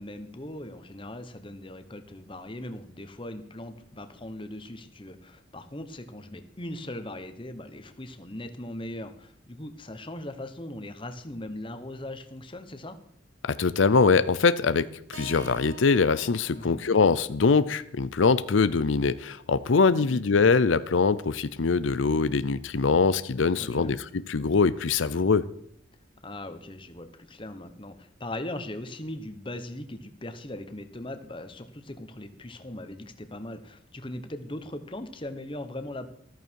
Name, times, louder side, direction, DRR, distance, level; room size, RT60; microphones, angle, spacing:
voice 1, 0.0-13.0 16.5-16.8 20.0-20.2 23.6-23.9 26.2-36.1, left 1 dB, 25° left, 9 dB, 1.2 m, -39 dB
voice 2, 13.4-24.0 24.3-25.4, left 4 dB, 90° left, 14 dB, 0.6 m, -23 dB
Keyboard (musical), 15.1-19.3, equal, 90° right, 2.4 m, -49 dB
14.0 x 13.5 x 4.7 m, 0.65 s
head